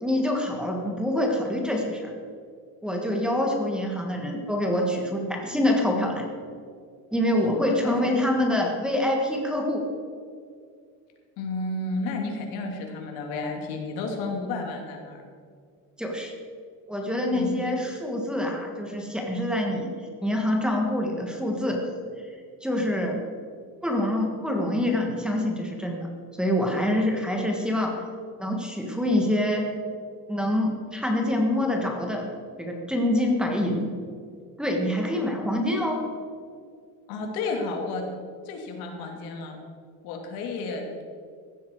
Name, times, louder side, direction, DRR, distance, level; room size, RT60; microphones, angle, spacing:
voice 1, 0.0-2.1 2.8-6.3 7.1-9.9 16.0-16.3 16.9-19.9 20.2-21.8 22.6-23.2 23.8-26.1 26.4-28.0 28.4-29.7 30.3-32.3 32.6-33.9 34.6-36.0, left 1 dB, ahead, 1 dB, 1.6 m, -25 dB
voice 2, 7.5-8.1 11.4-15.2 17.3-17.7 37.1-38.0 38.4-39.6 40.0-40.9, left 3 dB, 90° left, 2 dB, 2.9 m, -32 dB
16.0 x 12.5 x 4.7 m, 2.2 s
cardioid pair, 175°, 35 cm